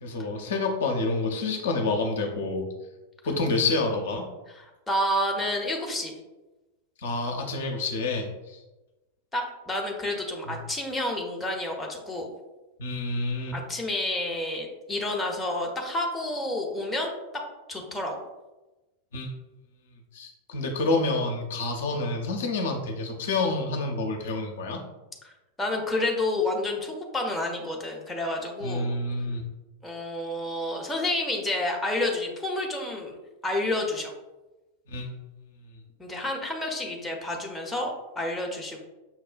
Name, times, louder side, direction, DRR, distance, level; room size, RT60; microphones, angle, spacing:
voice 1, 0.0-2.7 3.2-4.2 7.0-8.6 10.5-10.6 12.8-13.5 19.1-19.3 20.1-24.8 28.6-29.4 34.9-35.1, left 3 dB, 60° left, 2 dB, 0.5 m, -28 dB
voice 2, 4.5-6.1 9.3-12.3 13.5-17.2 17.7-18.2 25.2-25.3 25.6-29.0 29.8-33.2 33.4-34.1 36.0-38.8, left 1 dB, 10° left, 0 dB, 0.6 m, -29 dB
5.6 x 2.1 x 2.4 m, 1.1 s
figure-of-eight pair, 90°, 0 cm